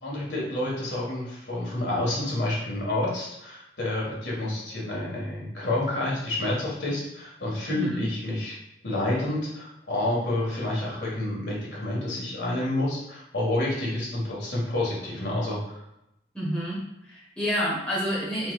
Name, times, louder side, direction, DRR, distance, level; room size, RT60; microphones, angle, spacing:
voice 1, 0.0-8.6 8.8-15.8, left 1 dB, 80° left, -4 dB, 1.4 m, -29 dB
voice 2, 7.7-8.0 16.3-16.8 17.0-18.5, equal, 5° left, -7 dB, 1.3 m, -29 dB
4.3 x 3.8 x 2.3 m, 0.84 s
head